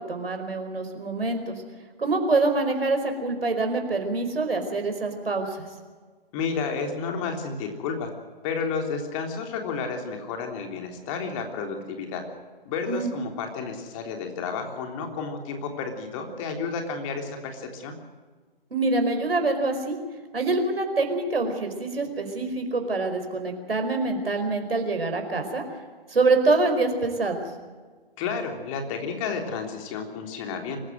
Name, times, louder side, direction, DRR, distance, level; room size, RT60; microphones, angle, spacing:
voice 1, 0.0-1.6 2.0-5.7 12.9-13.1 18.7-20.0 20.3-25.6 26.1-27.4, right 3 dB, 75° right, 5 dB, 4.8 m, -25 dB
voice 2, 6.3-8.1 8.4-12.2 12.7-18.0 28.2-30.8, left 5 dB, 35° left, 3 dB, 3.5 m, -31 dB
24.5 x 15.0 x 7.8 m, 1.5 s
figure-of-eight pair, 125°, 30 cm